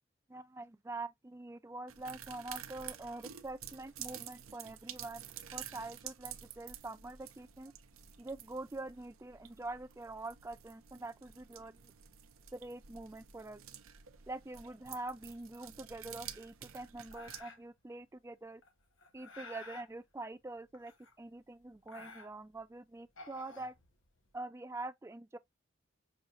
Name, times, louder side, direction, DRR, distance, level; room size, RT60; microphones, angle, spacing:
voice 1, 0.3-5.2 5.5-7.7 8.2-11.8 12.5-13.6 14.3-18.6 19.1-20.9 21.2-23.7 24.3-25.4, right 2 dB, 15° right, 0.3 m, -45 dB
sound 1, 1.9-17.4, right 10 dB, 90° right, 0.7 m, -50 dB
sound 2, 17.1-17.8 18.6-19.9 20.7-21.4 21.7-22.6 23.0-24.3, left 2 dB, 70° left, 1.2 m, -52 dB
6.3 x 2.8 x 2.3 m
head